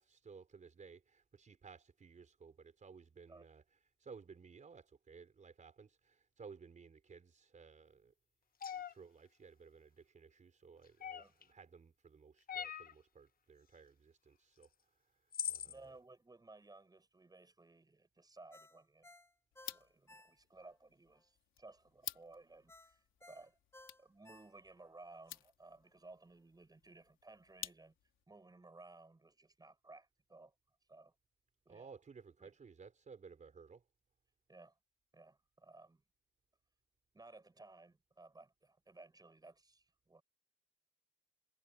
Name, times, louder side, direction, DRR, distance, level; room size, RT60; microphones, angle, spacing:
voice 1, 0.0-3.6 4.0-8.1 8.7-15.9 31.7-33.8, right 5 dB, 40° right, 4.6 m, -57 dB
sound 1, 8.6-8.9 11.0-11.4 12.5-12.9 14.6-14.7 15.3-15.7, left 8 dB, 45° left, 1.1 m, -41 dB
voice 2, 15.7-19.1 19.7-23.6 24.0-28.0 28.3-30.5 30.9-31.1 31.7-31.9 32.4-32.5 34.5-34.8 35.1-36.0 37.1-40.2, right 2 dB, 20° right, 6.9 m, -58 dB
Ringtone, 18.5-20.8 21.1-21.2 22.7-24.9 25.3-25.4, left 2 dB, 15° left, 2.2 m, -60 dB
sound 2, 19.5-28.2, left 12 dB, 80° left, 3.9 m, -53 dB
cardioid pair, 90°, 20 cm